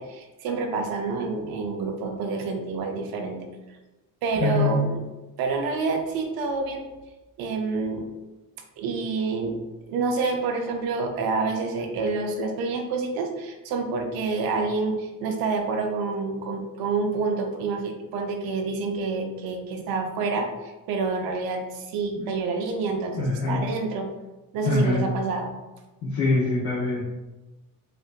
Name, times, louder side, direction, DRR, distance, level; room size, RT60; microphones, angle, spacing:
voice 1, 0.0-3.5 4.2-5.0 5.4-6.9 7.4-8.1 8.8-9.6 9.9-24.1 24.5-25.5, right 4 dB, 75° right, 3 dB, 0.7 m, -28 dB
voice 2, 4.4-4.8 22.2-22.3 23.2-23.6 24.6-25.0 26.0-27.0, left 2 dB, 55° left, -6 dB, 0.9 m, -24 dB
4.3 x 2.5 x 2.4 m, 1.1 s
cardioid pair, 125°, 37 cm